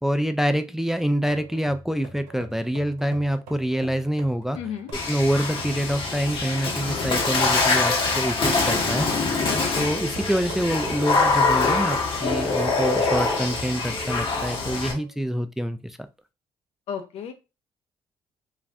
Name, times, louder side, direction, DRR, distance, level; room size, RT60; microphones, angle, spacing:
voice 1, 0.0-4.6 5.1-9.0 9.8-16.1, equal, 5° right, 9 dB, 0.3 m, -26 dB
sound 1, 1.3-13.2 13.7-13.8 14.5-15.1, right 4 dB, 85° right, 0.7 m, -42 dB
voice 2, 4.5-4.9 8.7-9.1 16.9-17.3, left 8 dB, 75° left, 6 dB, 0.6 m, -33 dB
Water / Splash splatter, 4.9-14.9, left 3 dB, 55° left, 1.0 m, -24 dB
sound 2, 9.7-14.6, right 2 dB, 25° right, 0.9 m, -38 dB
2.4 x 2.4 x 3.2 m, 0.27 s
supercardioid pair, 60°, 11 cm